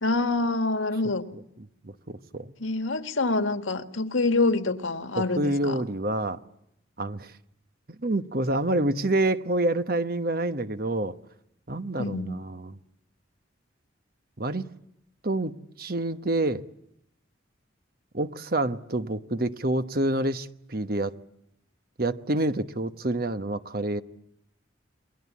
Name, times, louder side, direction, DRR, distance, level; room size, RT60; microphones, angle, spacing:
voice 1, 0.0-1.2 2.6-5.8 12.0-12.3, left 3 dB, 90° left, 1.9 m, -26 dB
voice 2, 1.8-2.5 5.2-6.4 7.0-7.3 8.0-11.2 11.7-12.8 14.4-14.7 15.2-15.5 15.8-16.6 18.1-21.2 22.0-24.0, right 1 dB, 50° right, 1.1 m, -27 dB
29.5 x 22.5 x 8.5 m
head